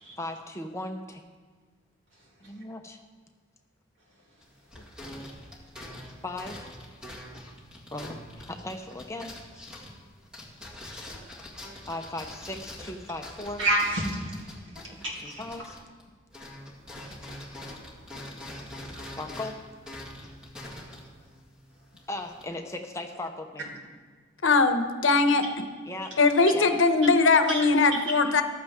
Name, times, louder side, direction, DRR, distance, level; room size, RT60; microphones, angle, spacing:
voice 1, 0.2-1.2 2.4-3.0 6.2-6.7 7.9-9.3 11.9-13.6 14.8-15.8 19.2-19.6 22.1-23.7 25.9-26.1 26.5-26.7, left 2 dB, 15° left, 4 dB, 0.8 m, -37 dB
sound 1, 4.4-16.0 16.3-22.4, left 1 dB, 5° right, 1.9 m, -44 dB
voice 2, 13.6-14.4 15.0-15.4 18.6-19.0 27.5-28.0, right 1 dB, 70° right, -3 dB, 2.8 m, -29 dB
voice 3, 24.4-25.5 26.2-28.4, left 3 dB, 75° left, 8 dB, 0.9 m, -21 dB
14.5 x 12.0 x 3.6 m, 1.5 s
head